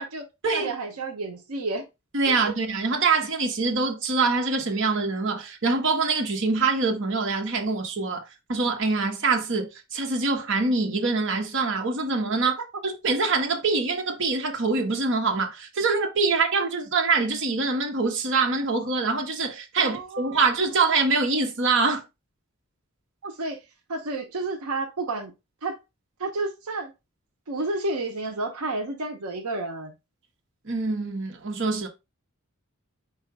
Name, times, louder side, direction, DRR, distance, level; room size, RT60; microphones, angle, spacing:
voice 1, 0.5-1.8 2.3-2.5 19.8-20.4 23.2-23.6 23.9-25.3 25.6-25.8 26.2-26.9 27.5-29.9, right 2 dB, 85° right, 0.8 m, -31 dB
voice 2, 2.1-22.0 30.6-31.9, right 4 dB, 55° right, 1.1 m, -24 dB
4.8 x 2.5 x 4.5 m
head